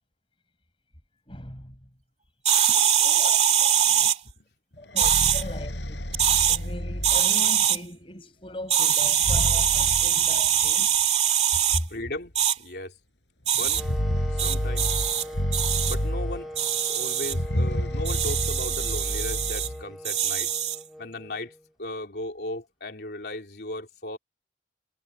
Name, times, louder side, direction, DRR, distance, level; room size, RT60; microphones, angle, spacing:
voice 1, 1.3-1.7 3.0-3.8 4.8-6.1 6.5-10.9 11.7-11.8, left 1 dB, 30° left, 7.6 m, -39 dB
sound 1, 2.4-4.2 5.0-5.4 6.1-6.6 7.0-7.8 8.7-11.8 12.3-12.5 13.5-13.8 14.4-15.2 15.5-15.9 16.6-17.3 18.0-19.7 20.0-20.8, right 9 dB, 40° right, 2.4 m, -23 dB
voice 2, 3.7-4.1 11.9-12.3 12.6-12.9 13.6-13.8 14.4-14.9 15.9-16.5 16.9-20.5 21.0-21.5 21.8-24.2, left 1 dB, 65° left, 3.4 m, -36 dB
sound 2, 4.8-7.7 9.0-10.7 11.7-11.8 12.2-12.3 13.6-16.7 17.2-19.8, equal, 85° left, 4.5 m, -30 dB
Wind instrument woodwind instrument, 13.7-21.7, equal, ahead, 2.6 m, -40 dB
head